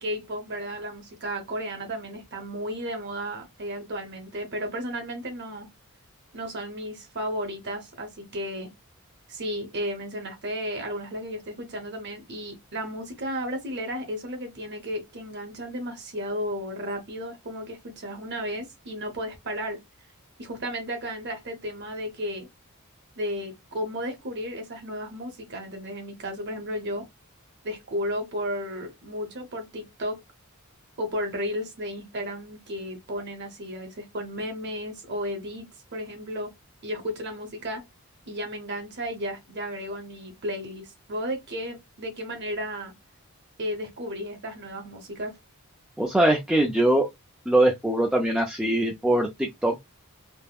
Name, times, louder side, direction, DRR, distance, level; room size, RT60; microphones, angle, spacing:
voice 1, 0.0-5.7 6.3-8.7 9.3-19.8 20.4-22.5 23.2-27.0 27.6-30.2 31.0-36.5 36.8-37.8 38.3-42.9 43.6-45.4, equal, 50° right, 0.9 m, -33 dB
voice 2, 46.0-47.1 47.5-49.8, right 1 dB, 5° right, 0.3 m, -22 dB
3.4 x 2.1 x 2.3 m
head